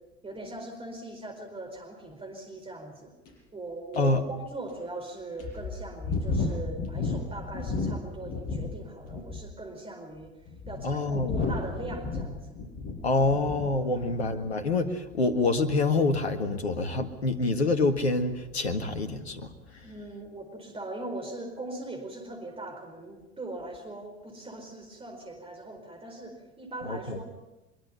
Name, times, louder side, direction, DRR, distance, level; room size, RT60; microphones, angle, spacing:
voice 1, 0.2-3.1 3.5-10.3 10.7-12.6 13.9-14.3 19.8-27.3, right 2 dB, 15° right, 3 dB, 4.6 m, -40 dB
sound 1, 3.3-3.4 3.9-4.0 4.7-4.8 5.4-8.8 9.0-9.5 10.2-13.7 14.0-14.3, left 3 dB, 45° left, 6.5 m, -32 dB
voice 2, 10.8-11.3 13.0-19.8 26.8-27.2, left 3 dB, 75° left, 6 dB, 1.8 m, -26 dB
23.5 x 23.5 x 5.7 m, 1.0 s
figure-of-eight pair, 75°, 32 cm